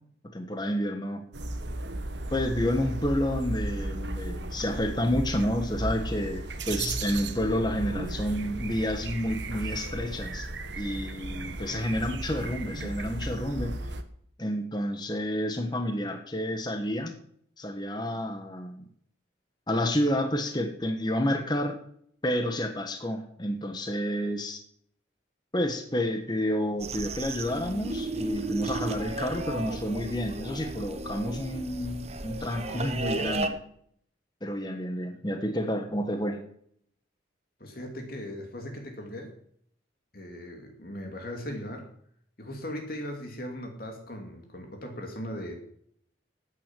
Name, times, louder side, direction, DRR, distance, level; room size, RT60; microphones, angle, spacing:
voice 1, 0.3-1.2 2.3-10.5 10.8-13.8 14.4-17.2 17.6-18.8 19.7-21.8 22.2-24.6 25.5-33.6 34.4-36.4, left 1 dB, 20° left, 6 dB, 1.3 m, -30 dB
sound 1, 1.3-14.0, right 2 dB, 70° right, 1.3 m, -35 dB
sound 2, 26.8-33.5, right 2 dB, 35° right, 1.1 m, -34 dB
voice 2, 37.6-39.3 40.1-41.9 42.4-45.6, left 1 dB, 50° left, 2 dB, 2.6 m, -38 dB
12.0 x 9.2 x 7.6 m, 0.66 s
head